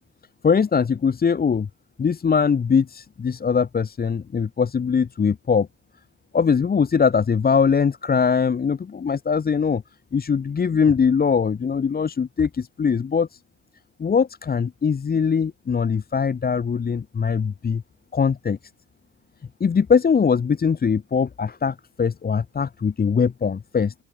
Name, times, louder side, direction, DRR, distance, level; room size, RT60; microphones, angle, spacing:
voice 1, 0.4-1.7 2.0-5.7 6.3-9.8 10.1-13.4 14.0-17.8 18.1-18.6 19.6-23.9, left 6 dB, 30° left, 1.0 m, -21 dB
open air
cardioid pair, 90°, 30 cm